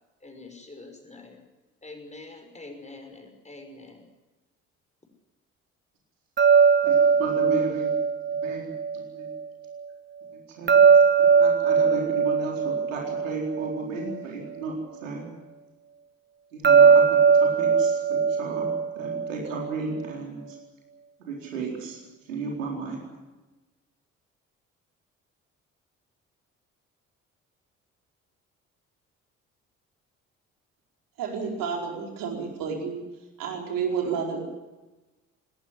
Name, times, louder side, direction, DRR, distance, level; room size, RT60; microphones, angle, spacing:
voice 1, 0.2-1.4 1.8-4.0, left 2 dB, 20° left, 5 dB, 5.9 m, -45 dB
sound 1, 6.4-9.4 10.7-14.2 16.6-19.7, right 6 dB, 25° right, 1.2 m, -20 dB
voice 2, 6.8-7.9 8.4-8.7 8.9-9.3 10.3-10.8 11.2-14.7 15.0-15.3 16.5-18.7 19.0-20.4 21.2-22.0 22.3-23.0, right 3 dB, 80° right, 0 dB, 4.2 m, -34 dB
voice 3, 31.2-33.0 33.4-34.4, right 6 dB, 55° right, 1 dB, 4.7 m, -30 dB
19.5 x 18.0 x 9.9 m, 1.1 s
figure-of-eight pair, 45°, 39 cm